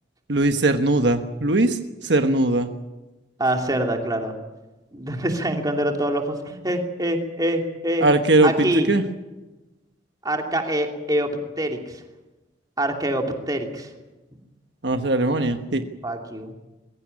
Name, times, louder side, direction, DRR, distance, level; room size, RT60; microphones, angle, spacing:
voice 1, 0.3-2.7 8.0-9.0 14.8-15.8, right 2 dB, 70° right, 7 dB, 1.3 m, -20 dB
voice 2, 3.4-4.3 4.9-8.1 8.4-8.9 10.2-11.3 11.6-11.8 12.8-13.9 16.0-16.5, right 1 dB, 20° right, 3 dB, 2.7 m, -25 dB
22.0 x 16.0 x 9.7 m, 1.1 s
head